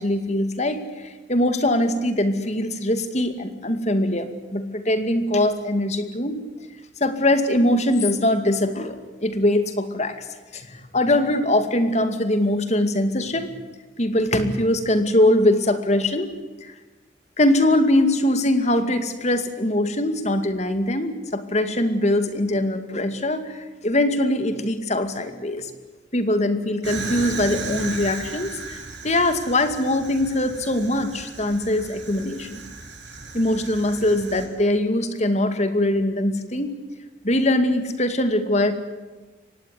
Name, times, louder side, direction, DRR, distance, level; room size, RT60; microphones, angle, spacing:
voice 1, 0.0-6.4 7.0-9.0 9.2-10.1 10.5-13.5 14.0-16.3 16.6-16.7 17.4-25.7 26.1-32.7 33.3-36.8 37.2-38.7, left 1 dB, 35° left, 9 dB, 2.4 m, -22 dB
Fire, 26.8-34.5, right 3 dB, 75° right, 7.3 m, -36 dB
24.0 x 18.5 x 9.7 m, 1.2 s
head